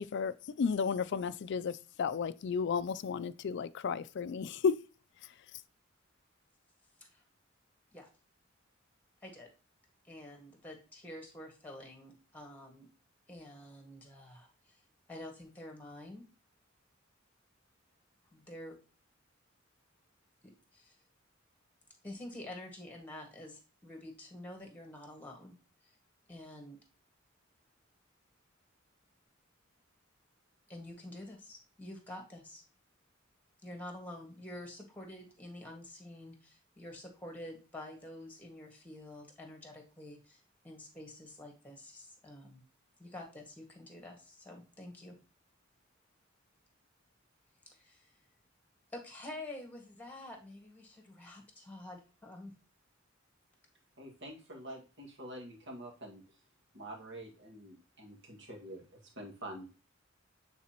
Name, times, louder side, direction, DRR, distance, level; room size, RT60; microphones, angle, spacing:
voice 1, 0.0-4.8 5.2-5.3, left 6 dB, 60° left, 0.4 m, -33 dB
voice 2, 10.0-12.9 13.3-14.8 15.1-16.2 18.3-18.8 20.4-20.9 22.0-25.5 26.3-26.8 30.7-32.6 33.6-42.6 43.0-45.2 47.6-48.1 48.9-52.5, left 1 dB, 10° left, 1.7 m, -48 dB
voice 3, 54.0-56.2 56.7-58.8 59.2-59.7, right 1 dB, 60° right, 1.9 m, -47 dB
8.6 x 4.1 x 2.9 m
head